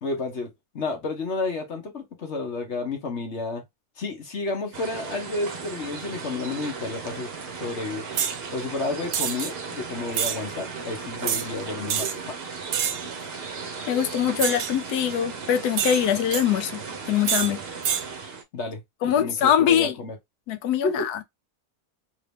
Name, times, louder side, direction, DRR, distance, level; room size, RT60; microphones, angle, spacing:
voice 1, 0.0-3.6 4.0-7.3 7.6-8.0 8.5-12.4 18.5-20.2 20.8-21.1, left 3 dB, 50° left, 1.2 m, -31 dB
sound 1, 4.7-18.4, right 5 dB, 45° right, 1.0 m, -36 dB
sound 2, 8.2-8.4 9.1-9.5 10.1-10.4 11.3-11.5 11.9-12.2 12.7-13.1 14.4-14.8 15.8-16.4 17.3-17.5 17.8-18.1, right 9 dB, 70° right, 1.1 m, -26 dB
voice 2, 13.9-16.8 17.1-17.6 19.0-19.9 20.5-21.2, left 9 dB, 90° left, 1.2 m, -23 dB
3.1 x 2.8 x 3.3 m
omnidirectional pair, 1.6 m